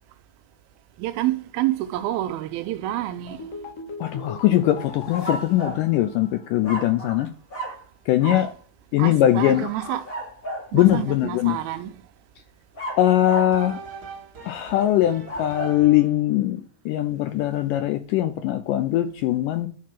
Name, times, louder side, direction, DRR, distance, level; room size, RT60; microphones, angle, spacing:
voice 1, 1.0-3.4 8.3-8.4 9.0-10.0 10.7-11.9, right 14 dB, 80° right, 2.4 m, -28 dB
sound 1, 3.3-6.7 7.0-7.1, left 3 dB, 60° left, 3.0 m, -39 dB
voice 2, 4.0-7.3 8.1-8.5 8.9-9.7 10.7-11.6 13.0-13.8 14.5-19.7, left 13 dB, 85° left, 1.9 m, -21 dB
sound 2, 5.1-5.9 6.6-7.2 7.5-7.8 8.2-8.5 9.5-10.7 12.8-13.6 15.1-15.8, right 1 dB, 30° left, 1.0 m, -33 dB
sound 3, 12.9-16.2, right 5 dB, 50° right, 1.2 m, -42 dB
11.0 x 3.8 x 5.8 m
omnidirectional pair, 4.4 m